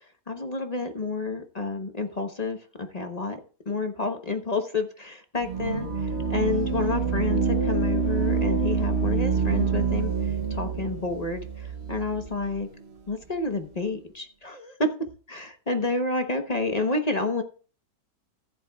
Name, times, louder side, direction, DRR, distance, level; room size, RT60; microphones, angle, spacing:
voice 1, 0.3-3.4 3.6-12.7 13.1-14.9 15.3-17.4, left 3 dB, 30° left, 6 dB, 1.0 m, -29 dB
sound 1, 5.4-12.6, right 5 dB, 45° right, 1.1 m, -26 dB
14.5 x 10.5 x 2.4 m, 0.39 s
omnidirectional pair, 1.8 m